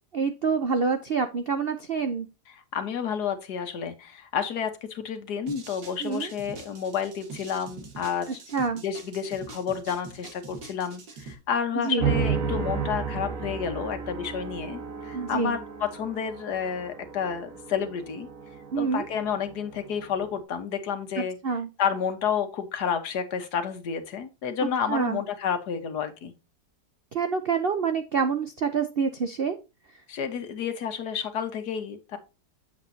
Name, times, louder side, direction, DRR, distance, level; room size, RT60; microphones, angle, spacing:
voice 1, 0.1-2.3 6.0-6.3 8.5-8.8 11.8-12.1 15.1-15.6 18.7-19.1 21.2-21.7 24.9-25.2 27.1-29.6, right 5 dB, 65° right, 0.5 m, -27 dB
voice 2, 2.5-8.4 8.7-18.3 18.8-21.4 21.8-26.3 30.1-32.2, left 7 dB, 65° left, 1.7 m, -30 dB
sound 1, 5.5-11.3, right 4 dB, 85° right, 2.4 m, -44 dB
sound 2, 12.0-20.4, right 6 dB, 50° right, 1.8 m, -33 dB
8.0 x 7.2 x 2.7 m
omnidirectional pair, 1.9 m